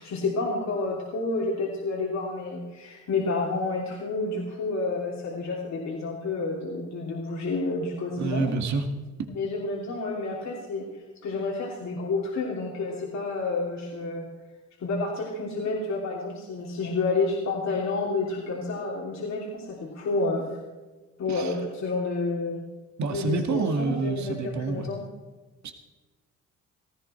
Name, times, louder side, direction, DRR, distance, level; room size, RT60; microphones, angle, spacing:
voice 1, 0.0-8.5 9.3-14.3 14.8-20.6 21.2-22.6 23.1-25.0, left 3 dB, 65° left, -3 dB, 3.3 m, -30 dB
voice 2, 8.2-8.8 21.4-21.5 23.0-24.9 25.6-25.7, right 4 dB, 65° right, 5 dB, 2.1 m, -28 dB
18.0 x 14.5 x 4.5 m, 1.3 s
cardioid pair, 90°, 30 cm